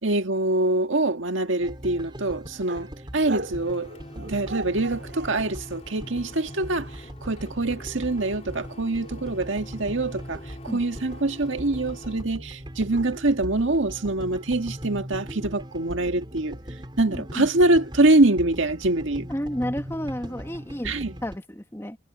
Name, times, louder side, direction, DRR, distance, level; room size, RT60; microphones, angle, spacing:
voice 1, 0.0-3.9 4.1-16.6 17.0-19.3 20.8-21.1, right 2 dB, 90° right, 1.7 m, -24 dB
sound 1, 1.6-21.4, equal, 25° right, 5.1 m, -39 dB
sound 2, 2.7-3.0 3.2-5.5 6.3-7.2 8.1-10.0 10.9-12.0 12.9-14.2, right 3 dB, 60° right, 4.4 m, -42 dB
Printer, 3.2-12.2, left 1 dB, 35° left, 3.0 m, -47 dB
voice 2, 17.1-17.5 19.3-20.9 21.2-22.0, equal, 15° left, 1.8 m, -31 dB
head